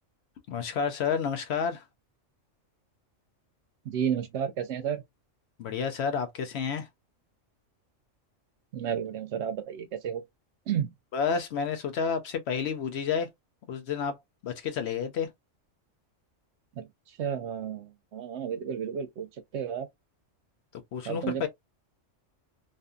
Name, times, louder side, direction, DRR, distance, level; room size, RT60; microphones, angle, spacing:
voice 1, 0.5-1.8 5.6-6.9 11.1-13.3 13.7-14.1 14.4-15.3 20.9-21.5, left 6 dB, 65° left, 0.8 m, -30 dB
voice 2, 3.9-5.0 8.7-10.2 10.7-10.9 16.8-16.9 17.2-19.3 19.5-19.9 21.1-21.5, right 8 dB, 70° right, 0.8 m, -32 dB
2.6 x 2.6 x 2.3 m
omnidirectional pair, 1.3 m